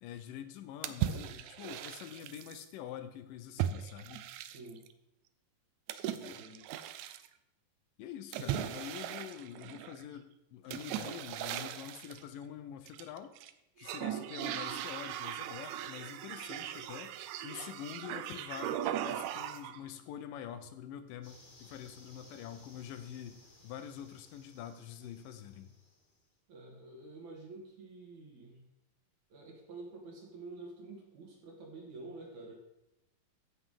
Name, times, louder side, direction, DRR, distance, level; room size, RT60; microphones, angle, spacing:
voice 1, 0.0-4.3 6.2-6.4 8.0-13.3 13.8-25.7, left 10 dB, 75° left, 10 dB, 2.4 m, -46 dB
sound 1, 0.8-2.6 3.6-4.9 5.9-7.3 8.3-10.0 10.7-12.2 12.9-13.5 13.8-19.8, right 11 dB, 90° right, 1.6 m, -38 dB
voice 2, 4.4-4.8 5.9-6.6 8.3-8.7 26.5-28.6 29.3-32.6, right 3 dB, 60° right, -1 dB, 2.6 m, -49 dB
sound 2, 21.2-26.2, left 2 dB, 50° left, 0.5 m, -60 dB
15.0 x 5.6 x 4.9 m, 0.86 s
omnidirectional pair, 4.0 m